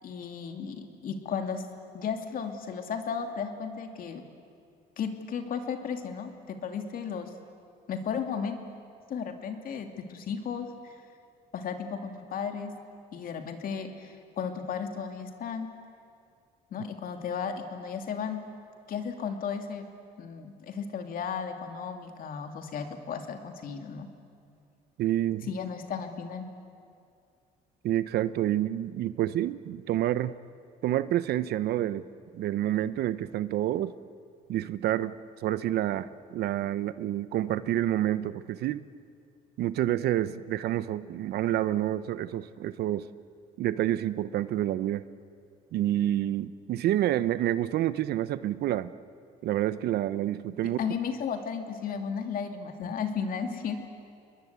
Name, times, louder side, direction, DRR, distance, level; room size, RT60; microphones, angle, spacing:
voice 1, 0.0-1.6 1.9-4.2 5.0-7.3 7.9-8.6 9.1-10.9 11.5-12.7 13.1-15.7 16.7-18.4 18.9-19.9 20.2-24.1 25.5-26.5 50.8-53.9, left 6 dB, 55° left, 5 dB, 2.8 m, -34 dB
voice 2, 25.0-25.5 27.8-30.3 30.8-32.0 32.3-33.9 34.5-35.1 35.4-38.8 39.6-43.1 43.6-45.0 45.7-48.9 49.4-50.8, right 13 dB, 70° right, 15 dB, 0.9 m, -28 dB
29.5 x 21.5 x 8.3 m, 2.4 s
cardioid pair, 110°, 17 cm